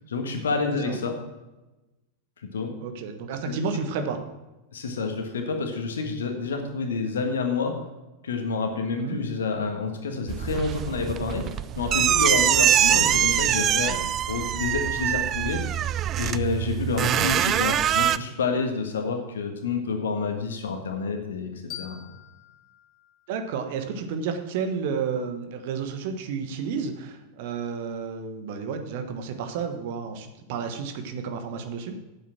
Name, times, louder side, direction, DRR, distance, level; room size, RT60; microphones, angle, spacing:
voice 1, 0.1-1.2 2.5-2.7 4.7-7.8 8.2-11.5 11.7-14.0 14.3-15.6 16.2-21.5 21.8-22.0, left 4 dB, 65° left, 5 dB, 1.6 m, -28 dB
voice 2, 2.8-4.2 9.0-9.2 12.9-13.0 23.3-32.0, right 5 dB, 50° right, 7 dB, 1.3 m, -31 dB
sound 1, 10.3-18.2, right 10 dB, 30° right, 0.4 m, -23 dB
sound 2, 11.8-13.7, right 1 dB, 85° right, 2.0 m, -45 dB
sound 3, 21.7-24.5, left 11 dB, 30° left, 1.3 m, -46 dB
9.2 x 8.1 x 5.9 m, 1.0 s
figure-of-eight pair, 90°, 0 cm